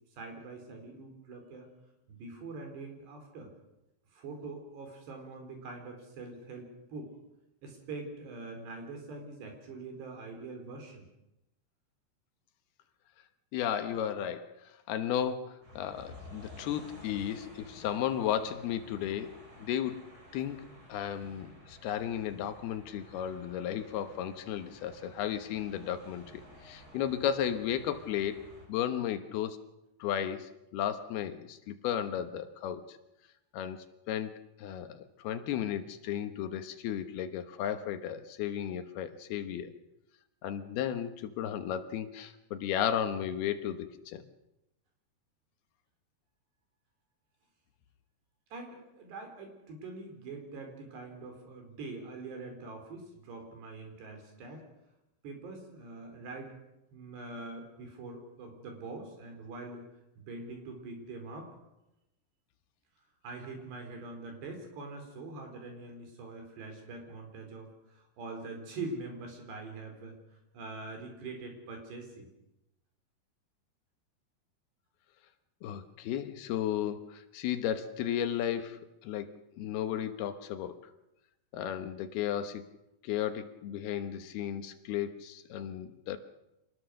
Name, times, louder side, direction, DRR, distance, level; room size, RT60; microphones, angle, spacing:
voice 1, 0.1-1.7 2.1-3.5 4.1-7.1 7.6-11.1 48.5-54.6 55.2-56.5 56.9-59.8 60.2-61.5 63.2-72.3, right 3 dB, 80° right, 3 dB, 6.4 m, -44 dB
voice 2, 13.5-14.6 14.9-20.0 20.3-20.6 20.9-29.6 30.0-33.0 33.5-34.3 34.6-39.7 40.4-44.2 75.6-79.3 79.6-80.8 81.5-82.7 83.0-86.2, left 10 dB, 75° left, 9 dB, 3.0 m, -34 dB
sound 1, 15.6-28.7, equal, 30° right, 6.7 m, -54 dB
26.0 x 19.0 x 6.5 m, 0.93 s
omnidirectional pair, 4.8 m